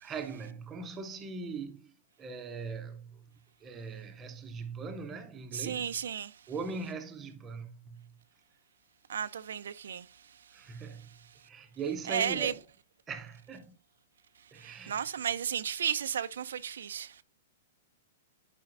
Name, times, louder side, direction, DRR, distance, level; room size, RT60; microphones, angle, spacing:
voice 1, 0.0-3.3 3.6-5.9 6.5-8.1 10.5-11.1 11.4-12.6 13.1-13.8 14.5-15.0, right 5 dB, 10° right, 0.6 m, -40 dB
voice 2, 5.5-6.3 9.1-10.1 12.1-12.5 14.6-17.1, right 8 dB, 85° right, 0.5 m, -33 dB
10.5 x 5.0 x 2.5 m
hypercardioid pair, 180°, 0 cm